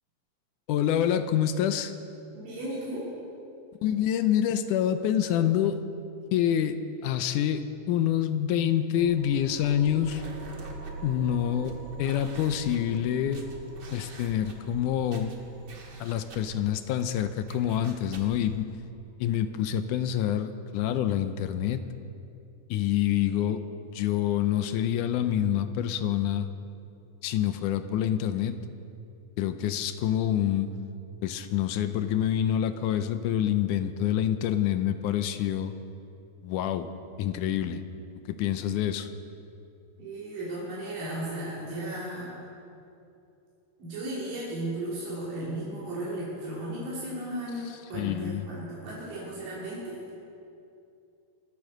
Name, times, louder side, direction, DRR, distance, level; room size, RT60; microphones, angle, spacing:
voice 1, 0.7-1.9 3.8-5.8 6.3-6.8 7.0-10.2 11.0-11.7 12.0-13.5 13.9-15.3 16.0-18.7 19.2-21.8 22.7-23.6 23.9-26.5 27.2-28.6 29.4-30.7 31.2-35.7 36.4-36.9 37.2-37.8 38.3-39.1 47.9-48.4, left 10 dB, 80° left, 10 dB, 2.0 m, -27 dB
voice 2, 2.3-3.0 40.0-42.3 43.8-50.0, right 1 dB, 90° right, -7 dB, 5.0 m, -35 dB
sound 1, 9.0-20.0, right 3 dB, 55° right, 3.4 m, -44 dB
sound 2, 9.4-18.6, right 2 dB, 40° right, 1.7 m, -50 dB
25.0 x 8.5 x 6.5 m, 2.6 s
omnidirectional pair, 3.9 m